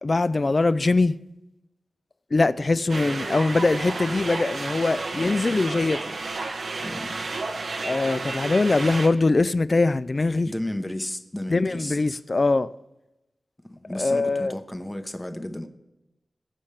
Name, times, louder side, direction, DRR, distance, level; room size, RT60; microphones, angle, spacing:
voice 1, 0.0-1.2 2.3-6.1 7.8-10.5 11.5-12.7 14.0-14.5, left 3 dB, 45° left, 0.4 m, -22 dB
sound 1, 2.9-9.1, right 3 dB, 90° right, 1.1 m, -31 dB
voice 2, 6.8-7.1 10.4-12.2 13.6-15.7, left 1 dB, 15° left, 0.8 m, -33 dB
21.0 x 7.2 x 3.3 m
wide cardioid pair, 80°, 0 cm